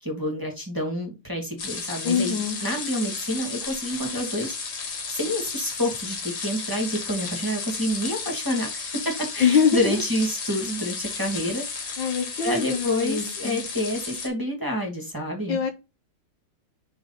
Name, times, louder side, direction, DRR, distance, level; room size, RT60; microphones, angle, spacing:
voice 1, 0.0-11.7 12.4-15.6, equal, 10° right, 1.9 m, -28 dB
sound 1, 1.6-14.3, left 5 dB, 85° left, 2.7 m, -33 dB
voice 2, 2.0-2.6 9.4-10.0 12.0-13.6 15.5-15.7, left 6 dB, 65° left, 1.6 m, -23 dB
6.1 x 4.6 x 4.0 m
omnidirectional pair, 2.3 m